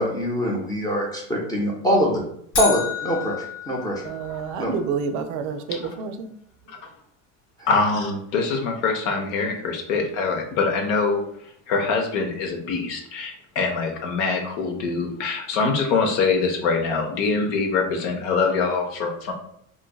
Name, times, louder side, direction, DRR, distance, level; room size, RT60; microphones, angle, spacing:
voice 1, 0.0-2.2 2.6-4.0 4.6-4.7, equal, 10° left, -3 dB, 0.4 m, -23 dB
sound 1, 2.5-4.7, left 5 dB, 55° left, 1.2 m, -30 dB
voice 2, 4.0-6.3, right 5 dB, 55° right, 9 dB, 0.5 m, -29 dB
voice 3, 7.7-11.2 11.7-19.3, left 4 dB, 75° left, 3 dB, 0.8 m, -24 dB
4.0 x 2.6 x 2.3 m, 0.67 s
cardioid pair, 135°, 36 cm